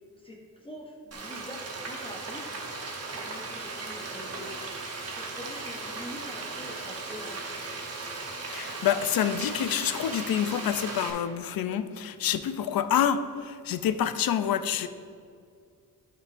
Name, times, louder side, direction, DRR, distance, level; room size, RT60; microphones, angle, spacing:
voice 1, 0.2-2.5 3.1-7.5, left 1 dB, 15° left, -2 dB, 0.8 m, -45 dB
Frying (food), 1.1-11.1, right 3 dB, 45° right, 0.9 m, -37 dB
voice 2, 8.5-14.9, left 9 dB, 70° left, 11 dB, 0.5 m, -27 dB
11.5 x 5.8 x 2.5 m, 2.2 s
wide cardioid pair, 160°, 36 cm